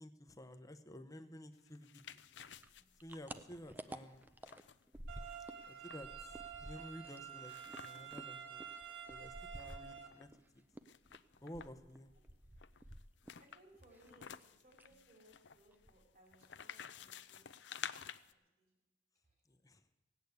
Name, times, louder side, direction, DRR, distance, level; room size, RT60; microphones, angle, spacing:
voice 1, 0.0-2.2 3.0-4.2 5.7-6.1 6.6-7.5 7.8-8.7 9.1-10.3 11.4-12.1 19.6-19.8, left 1 dB, 20° left, 9 dB, 0.8 m, -52 dB
sound 1, 1.6-8.3 8.7-8.8 9.0-10.3 10.8-11.9 12.6-18.3, left 8 dB, 75° left, 0.5 m, -53 dB
sound 2, 2.6-5.7 5.9-10.4 10.7-13.5 13.7-14.4 14.7-15.0 15.3-15.4 15.7-16.3, right 1 dB, 10° right, 0.5 m, -52 dB
sound 3, 5.1-10.1, right 8 dB, 80° right, 2.0 m, -49 dB
voice 2, 13.4-17.7 18.2-18.7 19.2-19.3, right 1 dB, 50° right, 0 dB, 4.8 m, -66 dB
17.5 x 8.6 x 8.1 m, 0.99 s
head